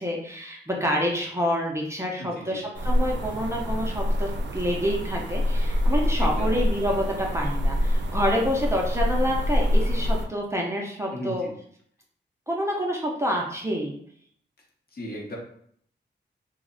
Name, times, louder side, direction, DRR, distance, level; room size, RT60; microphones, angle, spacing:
voice 1, 0.0-11.4 12.5-14.0, equal, 15° right, -2 dB, 0.4 m, -27 dB
voice 2, 2.2-2.6 6.2-6.6 8.0-8.1 11.1-11.5 14.9-15.4, equal, 55° left, -2 dB, 0.7 m, -36 dB
sound 1, 2.7-10.2, left 1 dB, 70° right, 0.4 m, -25 dB
2.4 x 2.0 x 3.7 m, 0.64 s
wide cardioid pair, 135°, 19 cm